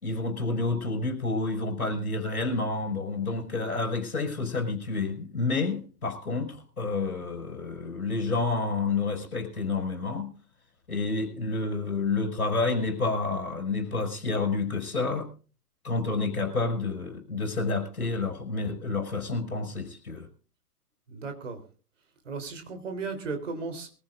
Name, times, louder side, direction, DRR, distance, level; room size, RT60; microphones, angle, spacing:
voice 1, 0.0-10.3 10.9-15.3 15.8-20.3, left 3 dB, 65° left, 4 dB, 5.0 m, -29 dB
voice 2, 21.1-21.6 22.2-23.9, right 4 dB, 50° right, 7 dB, 3.5 m, -35 dB
23.0 x 15.0 x 2.5 m, 0.38 s
figure-of-eight pair, 125°, 46 cm